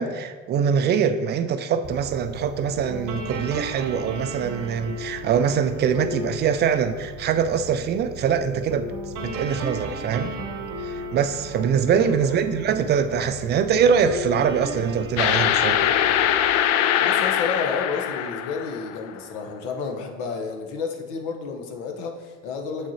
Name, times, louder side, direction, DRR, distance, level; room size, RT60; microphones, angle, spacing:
voice 1, 0.0-10.3 10.8-15.9, right 7 dB, 30° right, 10 dB, 0.4 m, -23 dB
sound 1, 1.8-16.5, right 1 dB, 50° right, 0.9 m, -35 dB
sound 2, 15.2-19.1, left 10 dB, 45° left, 0.4 m, -22 dB
voice 2, 17.0-22.9, left 5 dB, 65° left, 4 dB, 0.9 m, -31 dB
7.5 x 6.1 x 2.7 m, 1.4 s
figure-of-eight pair, 55°, 40 cm